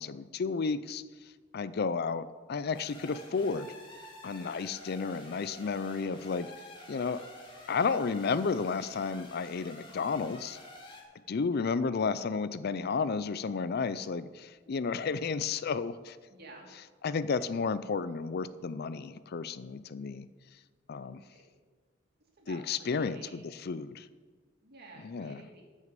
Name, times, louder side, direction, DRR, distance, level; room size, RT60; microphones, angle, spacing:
voice 1, 0.0-3.7 4.2-6.5 6.9-7.2 7.7-10.6 11.3-16.2 17.0-20.3 20.9-21.2 22.5-24.1 25.0-25.4, left 5 dB, 55° left, 16 dB, 0.4 m, -32 dB
sound 1, 2.7-11.0, left 1 dB, 25° left, 2.4 m, -49 dB
voice 2, 16.3-16.7 20.0-20.2 21.3-21.4 22.2-23.6 24.6-25.6, right 2 dB, 55° right, 0 dB, 2.6 m, -52 dB
13.5 x 6.4 x 7.5 m, 1.5 s
head